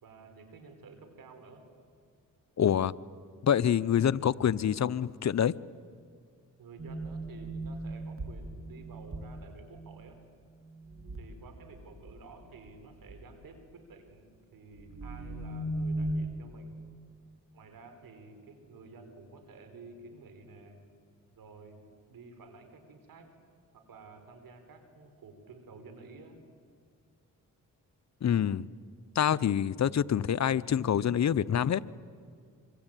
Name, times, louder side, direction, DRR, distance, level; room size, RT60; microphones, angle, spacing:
voice 1, 0.0-1.6 6.6-10.2 11.2-16.8 17.5-20.9 21.4-21.8 22.1-23.3 23.7-26.4, right 3 dB, 70° right, 7 dB, 4.8 m, -51 dB
voice 2, 2.6-2.9 3.4-5.5 28.2-28.7 29.1-31.8, left 9 dB, 50° left, 17 dB, 0.7 m, -26 dB
sound 1, 6.8-10.3 10.7-11.4 11.7-12.7 13.1-13.4 14.8-16.1, right 1 dB, 40° right, 4.1 m, -38 dB
26.0 x 25.0 x 9.1 m, 2.1 s
cardioid pair, 65°, 35 cm